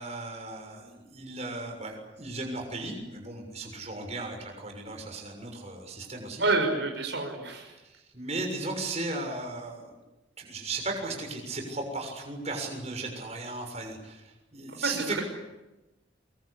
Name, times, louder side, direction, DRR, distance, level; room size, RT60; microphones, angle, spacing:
voice 1, 0.0-6.4 7.8-9.9 10.4-15.2, right 2 dB, 35° right, 2 dB, 6.7 m, -36 dB
voice 2, 6.4-7.7 14.8-15.0, right 3 dB, 75° right, 3 dB, 5.6 m, -27 dB
24.0 x 23.5 x 8.4 m, 1.0 s
head